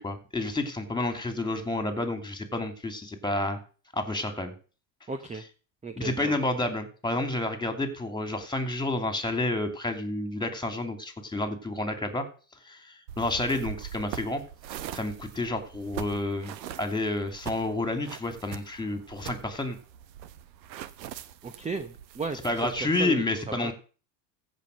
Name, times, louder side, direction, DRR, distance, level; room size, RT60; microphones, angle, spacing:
voice 1, 0.0-3.6 3.9-4.5 6.0-12.2 12.6-14.4 14.9-19.8 22.4-23.7, left 2 dB, 10° left, 7 dB, 2.8 m, -30 dB
voice 2, 5.1-5.4 5.8-6.3 21.4-23.7, right 4 dB, 15° right, 10 dB, 0.9 m, -35 dB
sound 1, 13.1-22.8, right 10 dB, 85° right, 1.0 m, -42 dB
15.0 x 5.5 x 6.6 m, 0.38 s
hypercardioid pair, 90°, 50 cm